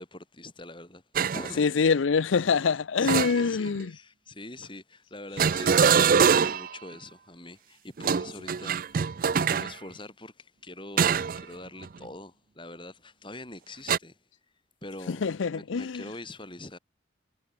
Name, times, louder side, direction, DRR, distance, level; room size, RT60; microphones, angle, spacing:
voice 1, 0.0-1.8 3.0-9.1 9.3-14.2 14.8-15.2 15.5-16.8, left 2 dB, 25° left, 7.6 m, -44 dB
sound 1, 1.2-1.5 3.1-3.8 5.4-6.8 8.0-9.7 11.0-11.4 11.8-12.1 13.9-14.0, right 6 dB, 45° right, 0.4 m, -23 dB
voice 2, 1.6-3.9 15.1-16.0, left 5 dB, 85° left, 0.5 m, -25 dB
head